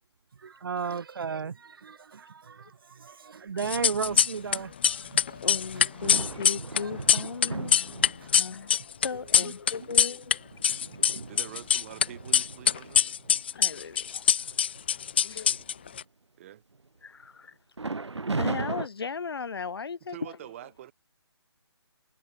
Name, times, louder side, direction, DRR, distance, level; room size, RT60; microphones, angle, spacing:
voice 1, 0.4-5.5 5.7-5.8 8.2-8.4 11.0-11.2, right 6 dB, 55° right, 1.3 m, -35 dB
sound 1, 3.6-4.6 4.8-10.3 10.6-12.0 12.3-16.0, left 8 dB, 25° left, 0.4 m, -23 dB
voice 2, 5.4-10.5 11.2-11.4 13.5-14.3 15.2-15.5 17.0-17.6 18.4-20.4, left 5 dB, 60° left, 2.1 m, -37 dB
sound 2, 5.5-8.5 9.2-9.3 9.8-13.4 13.9-14.1 14.4-14.8 15.2-16.0 17.8-18.9, right 3 dB, 85° right, 2.8 m, -37 dB
voice 3, 11.3-13.2 16.4-16.6 20.1-20.9, right 12 dB, 30° right, 4.3 m, -45 dB
figure-of-eight pair, 160°, 14 cm